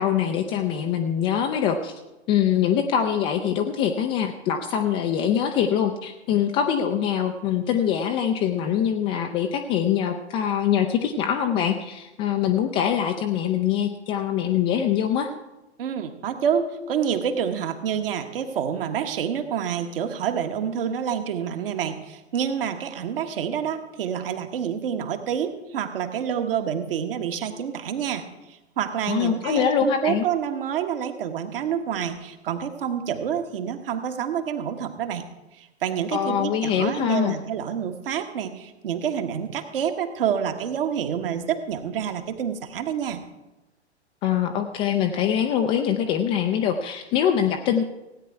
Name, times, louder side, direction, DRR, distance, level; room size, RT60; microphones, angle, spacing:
voice 1, 0.0-1.9 2.3-15.3 29.1-30.2 36.1-37.4 44.2-47.8, left 9 dB, 15° left, 5 dB, 0.4 m, -23 dB
voice 2, 15.8-35.3 35.5-43.2, right 8 dB, 55° right, 6 dB, 1.4 m, -28 dB
16.5 x 9.2 x 4.6 m, 1.0 s
figure-of-eight pair, 105°, 34 cm